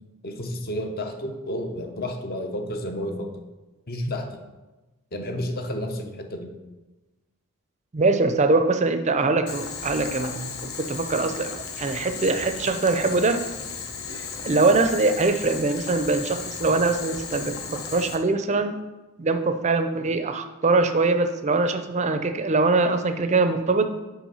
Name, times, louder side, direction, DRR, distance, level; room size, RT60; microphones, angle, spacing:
voice 1, 0.2-3.4 3.9-4.4 5.1-6.5, left 1 dB, 40° left, 5 dB, 0.7 m, -31 dB
voice 2, 7.9-13.4 14.4-18.8 19.2-23.9, right 3 dB, 30° right, 9 dB, 0.5 m, -23 dB
Boiling, 9.5-18.1, left 5 dB, 70° left, 0.9 m, -35 dB
6.0 x 5.1 x 5.5 m, 1.1 s
head